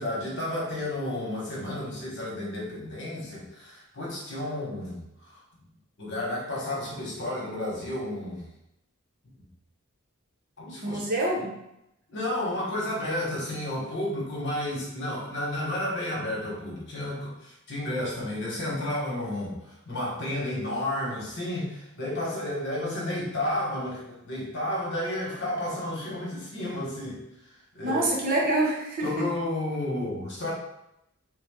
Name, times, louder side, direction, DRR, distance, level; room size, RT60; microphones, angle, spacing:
voice 1, 0.0-5.4 6.0-8.4 10.6-11.0 12.1-27.2 27.7-28.1 29.0-30.5, left 1 dB, 60° left, -4 dB, 1.2 m, -32 dB
voice 2, 10.8-11.6 27.8-29.3, right 1 dB, 45° right, -3 dB, 0.9 m, -26 dB
3.4 x 2.5 x 3.6 m, 0.84 s
head